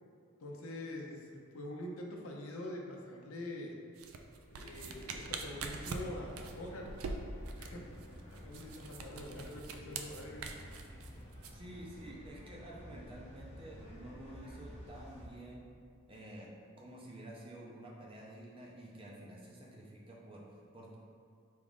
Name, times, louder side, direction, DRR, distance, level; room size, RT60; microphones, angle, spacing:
voice 1, 0.4-3.8 4.5-6.9 7.6-10.5, left 1 dB, 75° left, 0 dB, 0.6 m, -45 dB
sound 1, 4.0-11.5, right 4 dB, 75° right, 0.3 m, -43 dB
sound 2, 4.7-15.3, equal, 30° left, 0.8 m, -52 dB
voice 2, 11.5-15.6 16.1-16.5 16.8-20.4 20.7-21.0, right 1 dB, 25° right, -3 dB, 0.5 m, -50 dB
4.6 x 2.5 x 3.6 m, 2.3 s
head